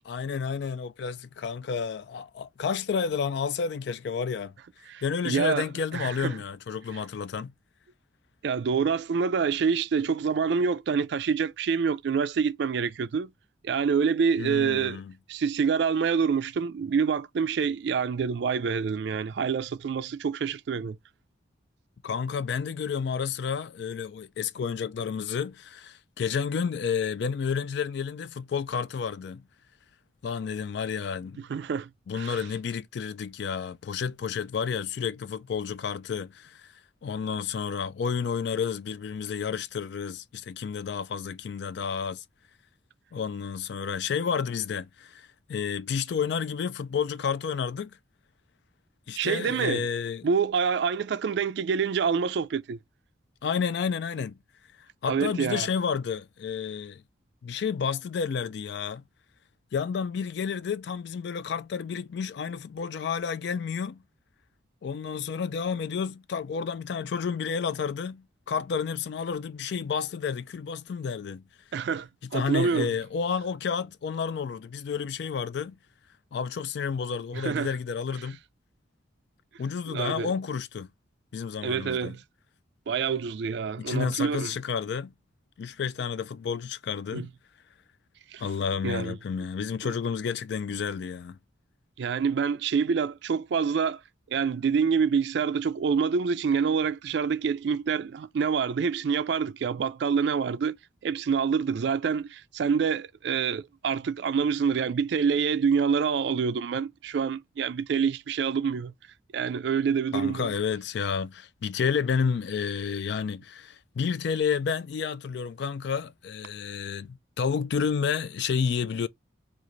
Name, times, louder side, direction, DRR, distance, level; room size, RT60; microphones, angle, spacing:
voice 1, 0.0-4.5 5.0-7.5 14.4-15.1 22.0-29.4 30.2-31.4 32.1-42.2 43.1-48.0 49.1-50.3 53.4-54.4 54.8-57.0 57.4-59.0 59.7-64.0 64.8-71.4 72.3-75.8 76.3-78.4 79.6-80.9 81.3-82.2 83.8-85.1 85.6-87.3 88.4-91.4 110.1-119.1, left 6 dB, 60° left, 0.3 m, -30 dB
voice 2, 4.9-5.6 5.9-6.3 8.4-13.3 13.6-15.0 15.3-21.0 31.5-31.9 32.1-32.3 49.2-49.9 50.2-52.8 55.1-55.7 71.7-72.9 77.3-77.7 79.9-80.3 81.6-82.2 82.9-84.5 87.1-87.3 88.3-88.4 88.8-89.2 89.8-89.9 92.0-94.0 94.3-100.8 101.0-108.9 109.3-110.5, right 6 dB, 60° right, 0.3 m, -26 dB
3.1 x 2.4 x 3.8 m
head